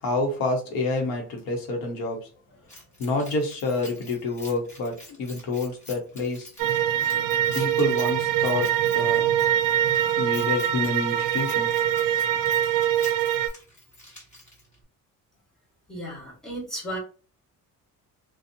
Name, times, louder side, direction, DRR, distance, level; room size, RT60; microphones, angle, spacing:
voice 1, 0.0-2.2 3.0-6.5 7.5-9.3 10.2-11.7, left 2 dB, 90° left, 1.0 m, -28 dB
Keys jangling, 2.7-14.8, left 1 dB, 20° left, 1.3 m, -47 dB
sound 1, 6.6-13.5, right 11 dB, 75° right, 0.5 m, -23 dB
voice 2, 15.9-17.0, right 1 dB, ahead, 1.1 m, -34 dB
2.7 x 2.3 x 2.5 m
cardioid pair, 160°, 34 cm